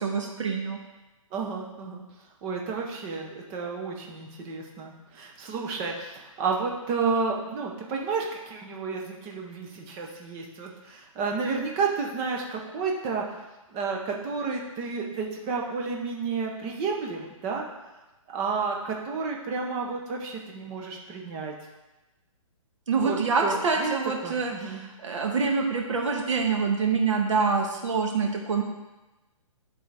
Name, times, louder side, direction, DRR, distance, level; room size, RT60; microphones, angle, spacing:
voice 1, 0.0-0.8 22.9-28.6, right 5 dB, 60° right, 1 dB, 1.3 m, -26 dB
voice 2, 1.3-2.0 2.4-13.4 13.7-17.6 18.3-21.5 23.0-23.9 24.2-24.8, right 4 dB, 15° right, 0 dB, 0.6 m, -31 dB
10.5 x 3.9 x 3.3 m, 1.1 s
hypercardioid pair, 165°, 18 cm